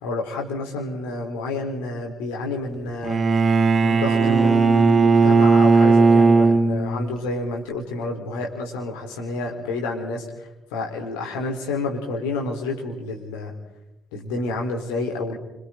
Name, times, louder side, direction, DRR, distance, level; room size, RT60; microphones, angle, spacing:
voice 1, 0.0-3.2 3.8-10.2 10.7-13.5 14.1-15.4, left 2 dB, 70° left, 0 dB, 4.0 m, -29 dB
Bowed string instrument, 3.0-7.1, right 4 dB, 35° right, 1.4 m, -17 dB
29.5 x 26.5 x 3.9 m, 0.94 s
figure-of-eight pair, 45°, 0 cm